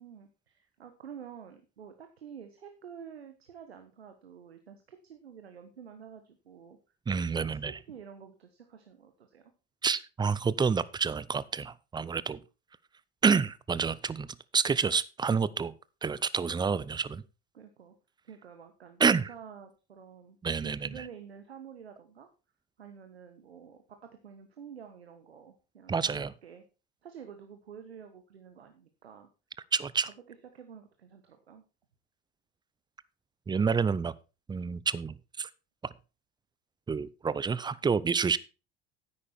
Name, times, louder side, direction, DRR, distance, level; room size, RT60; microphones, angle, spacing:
voice 1, 0.0-6.8 7.4-9.4 17.5-17.9 18.2-20.4 20.6-22.3 22.8-24.0 24.2-26.6 27.0-29.3 30.3-31.6, right 7 dB, 90° right, 1.2 m, -49 dB
voice 2, 7.1-7.8 9.8-12.4 13.2-15.7 16.0-17.2 19.0-19.3 20.4-21.0 25.9-26.3 29.7-30.1 33.5-34.1 34.5-35.5 36.9-38.4, right 5 dB, 15° right, 0.6 m, -28 dB
10.0 x 8.5 x 4.3 m
hypercardioid pair, 80°, 31 cm